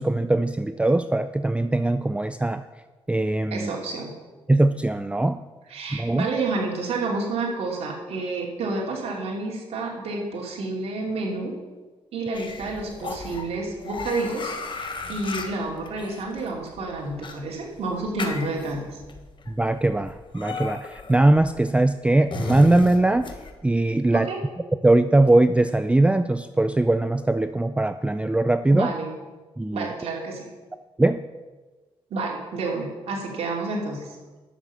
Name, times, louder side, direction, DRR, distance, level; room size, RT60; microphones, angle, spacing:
voice 1, 0.0-2.6 3.1-3.7 4.5-5.4 5.9-6.3 19.6-23.3 23.6-24.3 24.8-28.9 29.6-29.9 31.0-31.2, right 2 dB, 10° right, 10 dB, 0.4 m, -21 dB
voice 2, 3.5-4.1 5.7-11.5 12.1-18.9 24.1-24.4 28.7-29.1 29.7-30.4 32.1-34.1, right 3 dB, 85° right, -2 dB, 2.7 m, -29 dB
sound 1, 12.3-23.5, left 4 dB, 50° left, 1.3 m, -36 dB
11.0 x 7.3 x 7.1 m, 1.3 s
cardioid pair, 80°, 10 cm